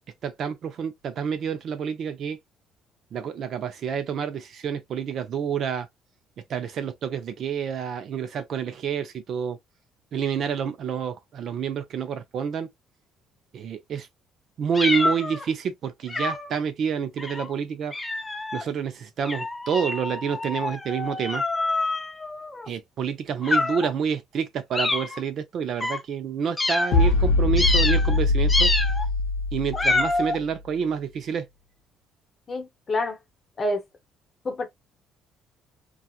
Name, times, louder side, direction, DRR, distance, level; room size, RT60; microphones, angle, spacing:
voice 1, 0.2-2.4 3.1-5.9 6.5-9.6 10.1-12.7 13.5-14.1 14.6-17.9 18.5-21.4 22.7-28.7 29.5-31.4, right 7 dB, 50° right, 0.6 m, -28 dB
sound 1, 14.7-15.5 16.1-16.6 17.2-17.5 17.9-18.6 19.2-22.7 23.4-23.9 24.7-25.2 25.8-26.0 26.6-27.1 27.6-28.2 28.5-29.1 29.7-30.4, left 2 dB, 15° left, 0.4 m, -26 dB
sound 2, 26.9-30.4, left 3 dB, 80° left, 0.6 m, -22 dB
voice 2, 32.5-33.2 33.6-33.8 34.4-34.7, left 2 dB, 30° left, 0.9 m, -27 dB
2.8 x 2.4 x 2.4 m
cardioid pair, 130°, 0 cm